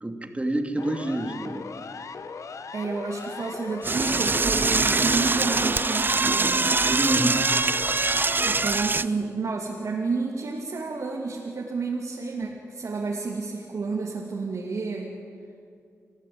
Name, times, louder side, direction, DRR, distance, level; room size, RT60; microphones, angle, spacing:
voice 1, 0.0-1.8 7.0-7.5, right 1 dB, 25° right, 5 dB, 2.7 m, -27 dB
Siren, 0.8-8.8, left 5 dB, 75° left, 1.1 m, -38 dB
voice 2, 2.7-6.7 8.4-15.2, right 4 dB, 75° right, -3 dB, 2.8 m, -30 dB
Door / Toilet flush, 3.8-9.0, right 3 dB, 40° right, 0.6 m, -23 dB
27.5 x 15.5 x 8.9 m, 2.3 s
cardioid pair, 65°, 5 cm